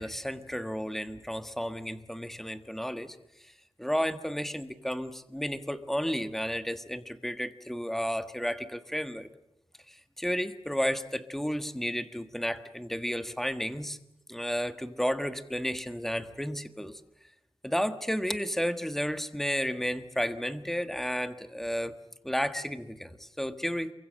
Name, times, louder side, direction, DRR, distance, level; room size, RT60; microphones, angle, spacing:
voice 1, 0.0-3.2 3.8-9.3 9.9-14.0 14.3-17.0 17.6-21.9 22.2-23.9, equal, 5° left, 9 dB, 1.5 m, -32 dB
28.5 x 24.0 x 7.7 m, 0.86 s
wide cardioid pair, 95°, 10 cm